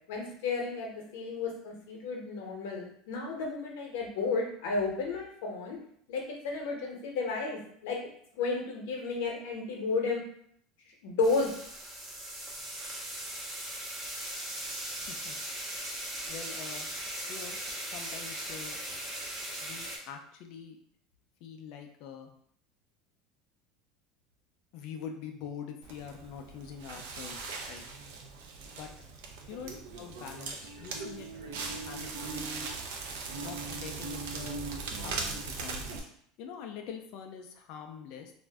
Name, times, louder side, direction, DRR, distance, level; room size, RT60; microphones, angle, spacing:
voice 1, 0.1-5.8 6.1-8.0 8.3-10.2 11.0-11.5, left 4 dB, 80° left, 0 dB, 0.8 m, -32 dB
sound 1, 11.2-20.0, right 1 dB, 15° right, 0.6 m, -39 dB
voice 2, 15.0-15.4 16.3-16.9 17.3-17.6 17.9-18.8 19.6-20.8 21.4-22.3 24.7-27.8 28.8-28.9 29.5-31.3 31.9-32.5 33.4-34.7 35.0-36.1 36.4-38.3, left 7 dB, 50° left, 4 dB, 0.4 m, -44 dB
Crackle, 25.8-36.0, right 4 dB, 80° right, 0.5 m, -39 dB
2.5 x 2.1 x 3.3 m, 0.65 s
cardioid pair, 175°, 0 cm